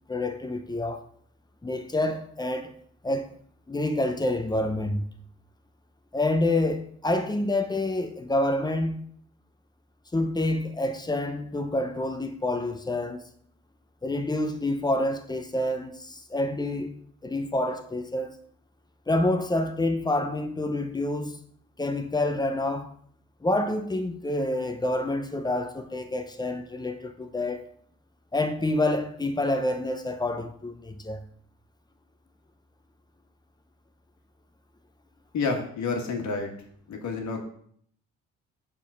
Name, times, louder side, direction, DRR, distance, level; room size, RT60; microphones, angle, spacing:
voice 1, 0.1-1.0 1.6-2.7 3.0-3.3 3.7-5.1 6.1-9.0 10.1-13.2 14.0-18.4 19.1-21.4 21.8-22.9 23.4-27.7 28.3-31.2, left 1 dB, 15° left, 0.7 m, -28 dB
voice 2, 35.3-36.5 36.9-37.4, left 4 dB, 70° left, 1.5 m, -29 dB
6.5 x 3.8 x 4.7 m
cardioid pair, 90°, 30 cm